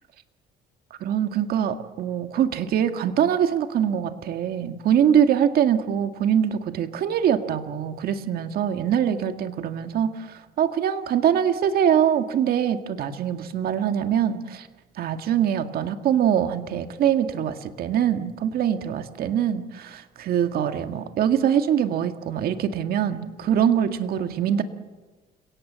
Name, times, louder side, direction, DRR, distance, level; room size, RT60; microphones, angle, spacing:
voice 1, 1.0-14.7 15.0-24.6, right 9 dB, 65° right, 7 dB, 1.9 m, -23 dB
29.0 x 18.0 x 7.6 m, 1.2 s
cardioid pair, 110°, 17 cm